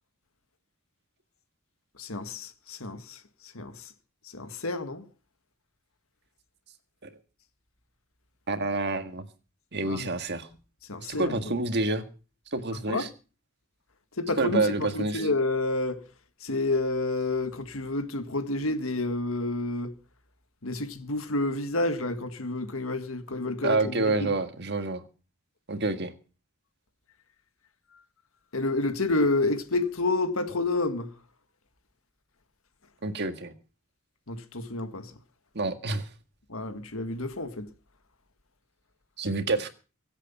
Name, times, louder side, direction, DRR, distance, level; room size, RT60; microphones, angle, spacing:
voice 1, 2.0-3.9 4.3-5.0 9.9-10.1 10.9-11.4 12.9-13.1 14.2-16.0 16.4-19.9 20.6-24.3 28.5-31.1 34.3-35.1 36.5-37.7, left 2 dB, 75° left, 1.8 m, -29 dB
voice 2, 8.5-9.2 9.7-10.5 11.1-12.0 12.5-13.1 14.4-15.3 23.6-25.0 25.7-26.1 33.0-33.5 35.5-36.1 39.2-39.7, right 3 dB, 50° right, 1.7 m, -28 dB
24.0 x 8.2 x 5.5 m
head